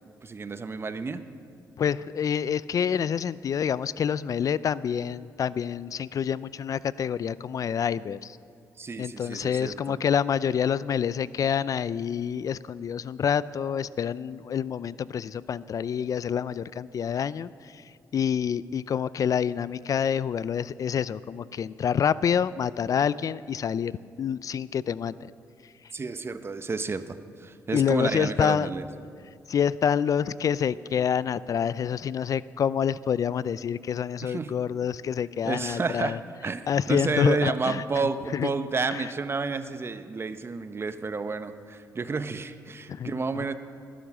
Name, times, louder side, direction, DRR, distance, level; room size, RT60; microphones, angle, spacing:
voice 1, 0.2-1.2 8.8-10.0 25.9-28.8 34.2-34.5 35.4-43.5, right 4 dB, 35° right, 11 dB, 0.9 m, -31 dB
voice 2, 1.8-8.4 9.0-17.5 18.1-25.1 27.7-28.7 29.5-36.2 36.7-37.8 38.3-38.5 42.9-43.1, left 8 dB, 55° left, 18 dB, 0.4 m, -27 dB
20.5 x 10.0 x 6.2 m, 2.4 s
cardioid pair, 75°, 7 cm